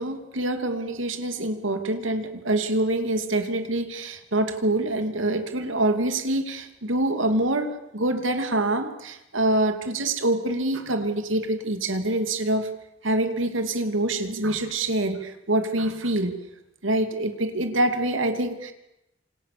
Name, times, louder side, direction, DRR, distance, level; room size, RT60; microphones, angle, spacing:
voice 1, 0.0-12.7 13.0-16.3 16.8-18.7, right 1 dB, 85° right, 7 dB, 2.9 m, -25 dB
27.5 x 27.0 x 7.0 m, 0.89 s
head